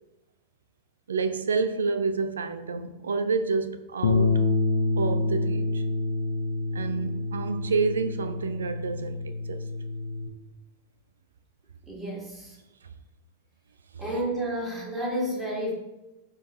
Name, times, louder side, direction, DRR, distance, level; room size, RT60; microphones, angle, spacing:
voice 1, 1.1-4.4 5.0-5.8 6.7-9.6, right 4 dB, 70° right, 0.6 m, -29 dB
Bass guitar, 4.0-10.3, left 3 dB, 70° left, 0.8 m, -27 dB
voice 2, 11.8-12.6 14.0-15.7, right 1 dB, 15° right, 2.7 m, -31 dB
12.0 x 4.1 x 2.8 m
figure-of-eight pair, 90°, 0 cm